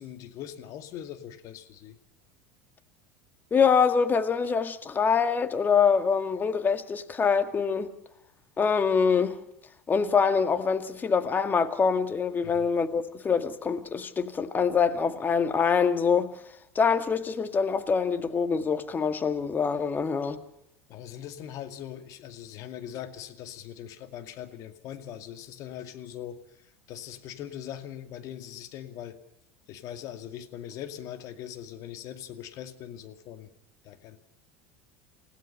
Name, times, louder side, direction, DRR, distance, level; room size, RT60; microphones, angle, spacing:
voice 1, 0.0-2.0 12.4-12.7 20.9-29.2 29.7-33.5 33.8-34.2, left 10 dB, 50° left, 2.3 m, -41 dB
voice 2, 3.5-7.9 8.6-9.4 9.9-16.3 16.8-20.4, left 6 dB, 25° left, 2.1 m, -25 dB
29.5 x 16.0 x 5.5 m
hypercardioid pair, 75°, 7 cm